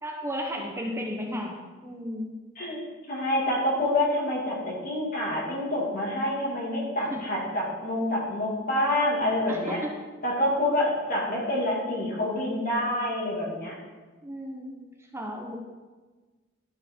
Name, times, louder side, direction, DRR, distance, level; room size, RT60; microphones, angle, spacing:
voice 1, 0.0-2.3 7.0-7.2 9.5-9.9 14.2-15.6, equal, 15° right, 0 dB, 1.0 m, -34 dB
voice 2, 3.1-9.8 10.2-13.7, left 1 dB, 45° left, -4 dB, 2.4 m, -27 dB
12.5 x 5.1 x 4.5 m, 1.3 s
head